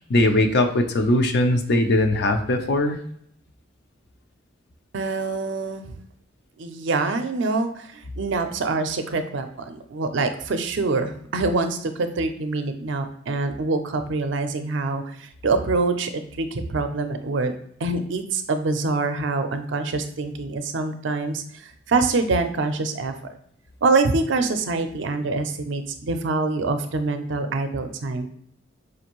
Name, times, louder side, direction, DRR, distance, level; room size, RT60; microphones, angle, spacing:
voice 1, 0.1-3.0, left 1 dB, 60° left, 6 dB, 0.5 m, -20 dB
voice 2, 4.9-5.9 6.6-17.5 17.8-23.1 23.8-28.3, right 3 dB, 65° right, 7 dB, 0.5 m, -25 dB
4.9 x 2.6 x 2.9 m, 0.65 s
head